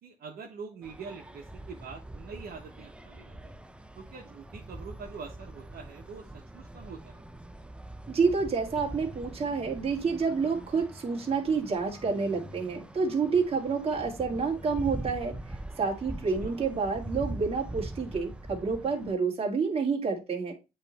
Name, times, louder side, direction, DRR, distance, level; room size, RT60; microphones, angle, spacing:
voice 1, 0.0-3.5 3.9-7.2 16.4-16.6, right 5 dB, 65° right, 0 dB, 1.2 m, -44 dB
sound 1, 0.8-19.1, right 1 dB, 5° right, 0.6 m, -43 dB
voice 2, 8.1-15.3 15.8-20.5, right 5 dB, 35° right, -1 dB, 2.2 m, -29 dB
8.0 x 3.3 x 4.1 m, 0.27 s
cardioid pair, 95°, 17 cm